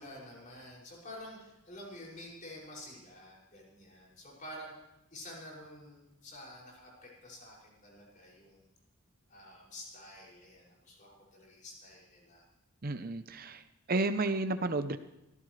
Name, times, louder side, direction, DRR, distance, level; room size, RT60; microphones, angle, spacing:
voice 1, 0.0-4.7 5.1-8.7 9.3-12.4, left 1 dB, 40° left, -3 dB, 6.3 m, -49 dB
voice 2, 12.8-13.6 13.9-15.0, right 2 dB, 45° right, 10 dB, 0.8 m, -31 dB
24.0 x 15.5 x 3.3 m, 0.93 s
head